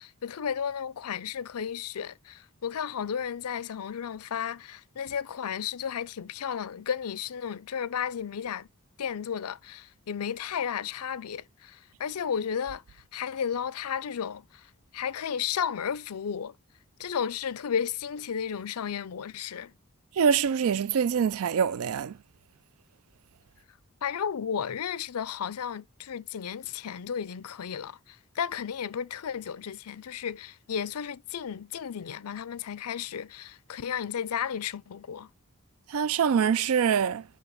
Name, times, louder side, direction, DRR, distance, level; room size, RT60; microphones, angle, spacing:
voice 1, 0.0-8.7 9.0-16.5 17.0-19.7 24.0-35.3, left 7 dB, 85° left, 0.5 m, -33 dB
voice 2, 20.2-22.1 35.9-37.2, right 7 dB, 70° right, 0.4 m, -24 dB
7.1 x 5.6 x 3.1 m
head